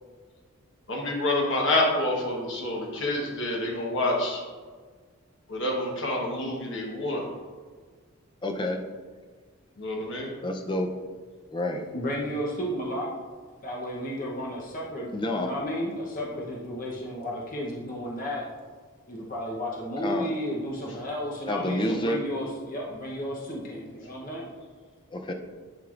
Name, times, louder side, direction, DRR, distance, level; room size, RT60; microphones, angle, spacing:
voice 1, 0.9-4.4 5.5-7.2 9.8-10.3, left 1 dB, 55° left, -2 dB, 1.2 m, -27 dB
voice 2, 8.4-8.8 10.4-10.9 11.5-11.8 15.1-15.5 20.0-20.3 21.5-22.2 25.1-25.3, left 1 dB, 20° left, 3 dB, 0.5 m, -28 dB
voice 3, 11.9-13.1 13.6-18.4 19.1-24.5, equal, 40° left, -4 dB, 0.9 m, -33 dB
10.5 x 4.7 x 2.5 m, 1.5 s
head